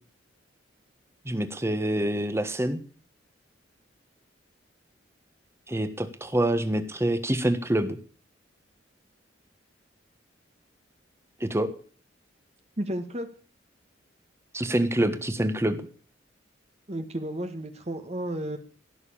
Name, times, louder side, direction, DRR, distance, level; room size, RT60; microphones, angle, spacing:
voice 1, 1.2-2.8 5.7-8.0 11.4-11.7 14.5-15.8, right 1 dB, 15° right, 10 dB, 1.4 m, -26 dB
voice 2, 12.8-13.3 16.9-18.6, right 1 dB, 35° right, 7 dB, 1.5 m, -32 dB
16.5 x 7.0 x 8.6 m, 0.42 s
head